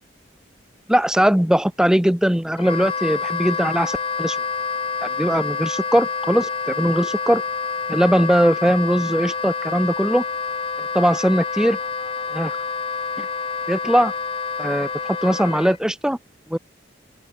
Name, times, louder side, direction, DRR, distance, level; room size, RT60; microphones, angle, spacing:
voice 1, 0.9-4.4 5.0-7.4 7.9-10.2 10.9-11.8 12.3-12.6 13.2-13.3 13.7-14.1 14.6-14.9 15.2-16.2 16.5-16.6, equal, 5° right, 0.5 m, -20 dB
Wind instrument woodwind instrument, 2.6-15.8, left 5 dB, 30° left, 1.1 m, -28 dB
open air
head